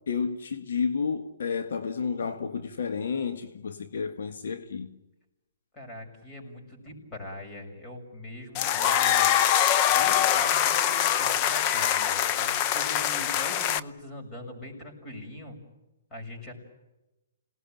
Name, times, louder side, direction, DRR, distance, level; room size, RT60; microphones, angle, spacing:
voice 1, 0.1-4.9, left 5 dB, 70° left, 1.7 m, -31 dB
voice 2, 5.7-9.3 9.9-15.6 16.1-16.5, left 1 dB, 15° left, 6.8 m, -42 dB
sound 1, 8.5-13.8, left 10 dB, 30° left, 0.8 m, -24 dB
28.0 x 19.0 x 9.2 m
hypercardioid pair, 140°, 0 cm